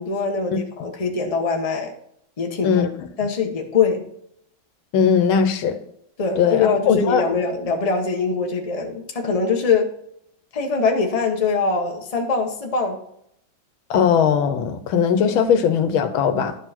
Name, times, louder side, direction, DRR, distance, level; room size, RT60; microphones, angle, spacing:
voice 1, 0.0-1.9 2.4-2.9 3.2-4.1 6.2-9.9 10.5-13.0, left 5 dB, 25° left, 0.9 m, -22 dB
voice 2, 2.6-3.1 4.9-5.8 6.4-7.2 13.9-16.5, left 7 dB, 85° left, 1.7 m, -19 dB
11.5 x 4.6 x 4.3 m
omnidirectional pair, 2.2 m